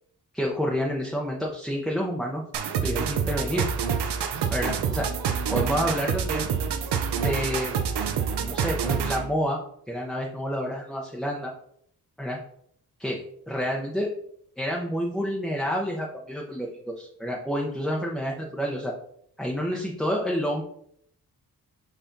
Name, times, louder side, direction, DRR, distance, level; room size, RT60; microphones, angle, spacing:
voice 1, 0.3-2.4 2.8-3.7 4.5-5.1 5.5-6.5 7.2-7.7 8.4-9.6 9.9-11.5 12.2-12.4 13.0-14.1 14.6-18.9 19.4-20.6, equal, ahead, -1 dB, 0.6 m, -29 dB
sound 1, 2.5-9.3, right 7 dB, 85° right, 0.6 m, -27 dB
5.7 x 3.3 x 2.6 m, 0.68 s
cardioid pair, 60°, 39 cm